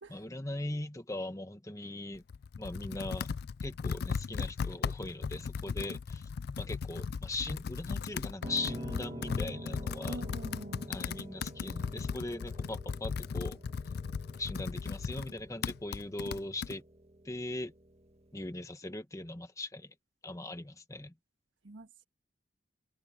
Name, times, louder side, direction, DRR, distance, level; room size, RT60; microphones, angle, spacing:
voice 1, 0.1-2.2 2.6-3.3 3.6-6.3 6.6-10.2 10.9-13.6 14.4-16.8 17.2-17.7 18.3-19.9 20.2-21.1, left 2 dB, 15° left, 1.3 m, -40 dB
Computer keyboard, 2.1-16.8, left 5 dB, 55° left, 0.4 m, -37 dB
Piano, 8.4-18.5, right 1 dB, 35° right, 1.9 m, -48 dB
voice 2, 10.1-10.9 21.6-22.1, right 1 dB, 75° right, 1.6 m, -45 dB
open air
head